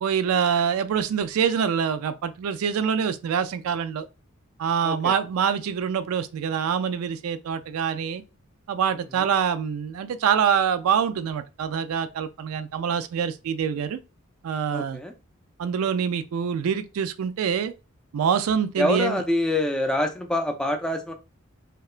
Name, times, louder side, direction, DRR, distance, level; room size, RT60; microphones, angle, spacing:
voice 1, 0.0-4.1 4.6-8.2 8.7-14.0 14.4-15.0 15.6-17.7 18.1-19.2, right 7 dB, 75° right, 0.3 m, -25 dB
voice 2, 4.8-5.1 9.2-9.3 14.7-15.1 18.8-21.1, left 1 dB, 5° left, 0.3 m, -25 dB
2.8 x 2.2 x 2.4 m
head